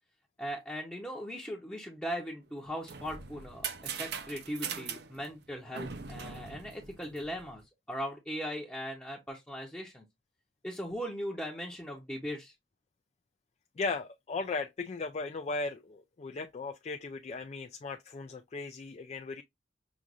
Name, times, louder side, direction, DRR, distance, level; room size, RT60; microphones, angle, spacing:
voice 1, 0.4-10.0 10.6-12.5, equal, 5° left, 0.8 m, -39 dB
sound 1, 2.5-7.6, right 6 dB, 60° right, 0.7 m, -41 dB
voice 2, 13.8-19.4, left 3 dB, 35° left, 0.3 m, -37 dB
6.0 x 2.5 x 2.5 m
head